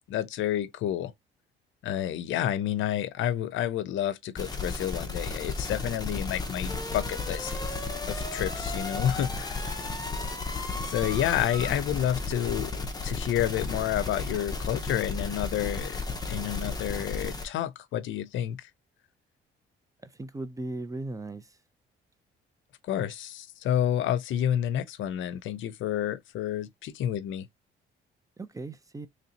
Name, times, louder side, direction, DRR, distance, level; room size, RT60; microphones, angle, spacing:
voice 1, 0.1-1.1 1.8-7.8 8.1-9.8 10.9-16.0 16.3-18.7 22.9-27.5, left 11 dB, 80° left, 0.5 m, -30 dB
sound 1, 4.4-17.4, left 3 dB, 20° left, 0.8 m, -33 dB
voice 2, 20.2-21.4 28.4-29.1, right 2 dB, 15° right, 0.5 m, -37 dB
3.2 x 2.7 x 3.9 m
cardioid pair, 90°, 20 cm